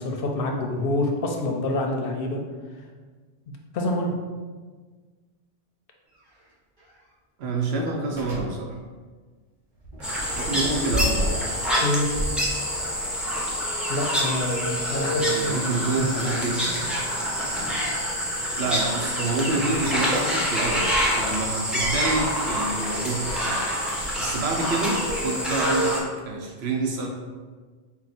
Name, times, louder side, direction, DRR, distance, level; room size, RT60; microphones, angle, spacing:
voice 1, 0.0-2.4 3.5-4.1 10.6-10.7 11.8-12.1 13.9-16.1, left 1 dB, 65° left, 2 dB, 0.7 m, -27 dB
sound 1, 6.1-6.3 6.8-6.9 8.1-8.5 9.8-11.6 12.1-13.1, equal, 50° right, 1.5 m, -31 dB
voice 2, 7.4-8.8 10.4-11.3 15.2-16.6 18.6-23.6 24.2-27.1, right 3 dB, 70° right, 1 dB, 0.9 m, -28 dB
sound 2, 10.0-26.0, equal, ahead, 0.4 m, -26 dB
4.4 x 2.3 x 4.0 m, 1.4 s
omnidirectional pair, 1.1 m